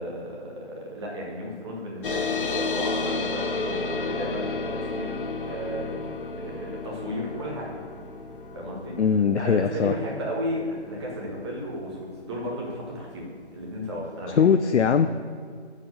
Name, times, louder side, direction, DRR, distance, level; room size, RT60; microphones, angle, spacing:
voice 1, 0.0-5.2 5.5-7.7 8.5-14.6, equal, 25° right, -3 dB, 1.7 m, -34 dB
sound 1, 2.0-13.0, left 3 dB, 50° left, 0.8 m, -32 dB
voice 2, 9.0-9.9 14.4-15.1, left 6 dB, 85° left, 9 dB, 0.5 m, -20 dB
9.3 x 5.0 x 6.6 m, 2.1 s
figure-of-eight pair, 165°, 34 cm